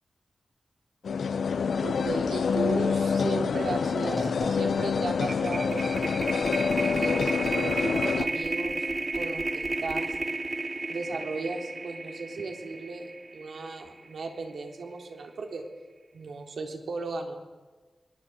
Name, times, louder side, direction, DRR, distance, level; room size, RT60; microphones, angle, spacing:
sound 1, 1.0-8.3, left 6 dB, 80° left, 1.1 m, -27 dB
voice 1, 1.8-6.1 6.8-7.3 7.5-8.8 9.1-10.2 10.9-15.6 16.1-17.4, right 3 dB, 75° right, 2 dB, 3.7 m, -36 dB
sound 2, 3.5-3.6 3.9-14.2, right 2 dB, 25° right, 1.3 m, -33 dB
26.0 x 21.5 x 8.1 m, 1.3 s
wide cardioid pair, 170°, 0 cm